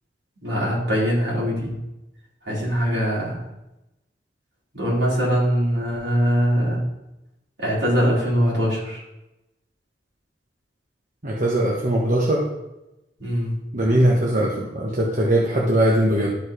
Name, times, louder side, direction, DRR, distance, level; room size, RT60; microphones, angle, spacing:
voice 1, 0.4-1.7 2.4-3.4 4.7-6.8 7.6-9.0 13.2-13.5, equal, 70° right, -5 dB, 3.9 m, -22 dB
voice 2, 11.2-12.4 13.7-16.3, right 1 dB, 45° right, -4 dB, 1.2 m, -20 dB
12.0 x 4.8 x 5.1 m, 0.93 s
head